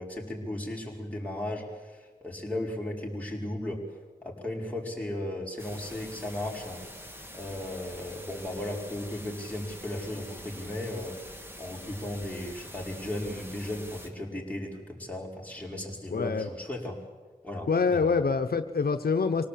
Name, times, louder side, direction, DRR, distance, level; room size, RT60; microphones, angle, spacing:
voice 1, 0.0-3.8 4.2-6.8 7.3-17.0 17.4-18.4, left 1 dB, 10° left, -2 dB, 5.7 m, -36 dB
sound 1, 5.6-14.1, equal, 15° right, 3.3 m, -45 dB
voice 2, 16.1-16.5 17.7-19.5, left 5 dB, 80° left, 8 dB, 1.0 m, -26 dB
25.0 x 18.0 x 8.7 m, 1.3 s
wide cardioid pair, 60°, 16 cm